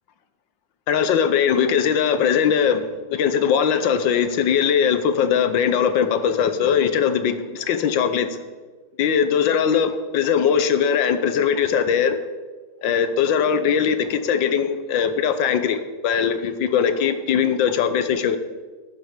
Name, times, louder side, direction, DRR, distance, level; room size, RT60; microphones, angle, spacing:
voice 1, 0.9-8.4 9.0-12.2 12.8-18.4, left 7 dB, 70° left, 11 dB, 1.5 m, -20 dB
11.5 x 8.1 x 6.5 m, 1.3 s
omnidirectional pair, 2.1 m